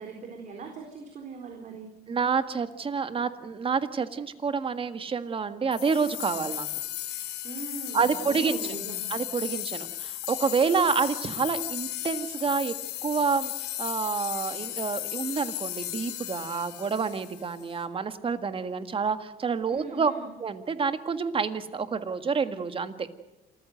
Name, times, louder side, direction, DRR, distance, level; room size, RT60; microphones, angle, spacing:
voice 1, 0.0-1.9 7.4-9.1 19.7-20.3, right 4 dB, 45° right, 3 dB, 4.0 m, -40 dB
voice 2, 2.1-6.7 7.9-8.8 9.1-12.7 13.0-20.1 20.4-23.1, right 5 dB, 30° right, 10 dB, 1.7 m, -28 dB
sound 1, 5.7-17.7, left 14 dB, 85° left, 3.1 m, -35 dB
27.5 x 14.5 x 7.9 m, 1.0 s
cardioid pair, 110°, 17 cm